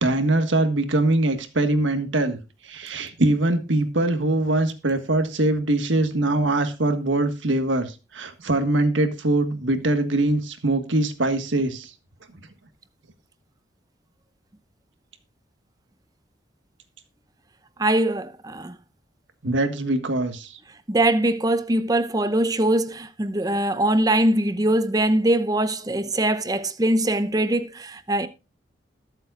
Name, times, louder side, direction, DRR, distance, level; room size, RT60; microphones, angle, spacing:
voice 1, 0.0-2.4 2.6-11.9 19.4-20.6, right 2 dB, 80° right, 1.6 m, -22 dB
voice 2, 17.8-18.8 20.9-28.3, right 1 dB, 20° right, 0.6 m, -22 dB
21.0 x 7.5 x 2.5 m
head